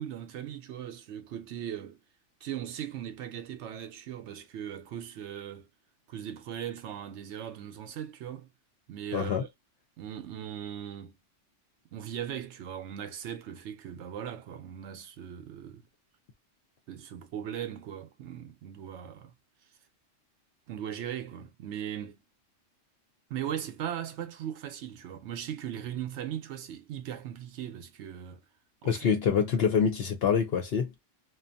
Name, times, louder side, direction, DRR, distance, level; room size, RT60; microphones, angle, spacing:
voice 1, 0.0-2.0 2.4-5.7 6.1-8.5 8.9-9.5 10.0-11.2 11.9-15.8 16.9-19.3 20.7-22.2 23.3-28.4 28.8-29.5, right 10 dB, 70° right, 0.9 m, -39 dB
voice 2, 9.1-9.4 28.8-30.9, left 7 dB, 60° left, 0.7 m, -26 dB
2.6 x 2.3 x 2.5 m
omnidirectional pair, 1.3 m